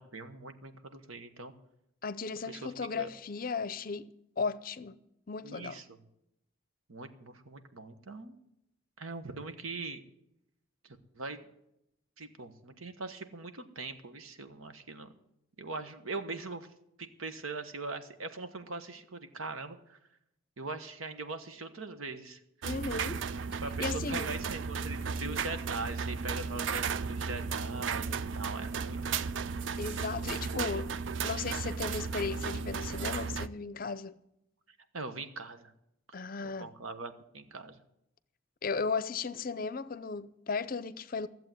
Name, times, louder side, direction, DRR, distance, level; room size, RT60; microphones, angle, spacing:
voice 1, 0.0-1.5 2.5-3.1 5.4-6.0 6.9-8.4 9.0-10.0 10.8-11.5 12.2-15.1 15.6-16.7 17.0-20.0 20.6-22.4 23.6-29.2 30.2-30.3 30.5-30.8 34.9-35.7 36.1-37.8, right 3 dB, 85° right, 1.3 m, -41 dB
voice 2, 2.0-4.1 4.4-5.0 5.3-5.8 22.6-23.3 23.8-24.3 29.8-30.9 31.2-34.2 36.1-36.7 38.6-41.3, left 4 dB, 45° left, 0.6 m, -35 dB
sound 1, 22.6-33.5, right 5 dB, 65° right, 0.4 m, -35 dB
14.5 x 7.7 x 9.2 m
head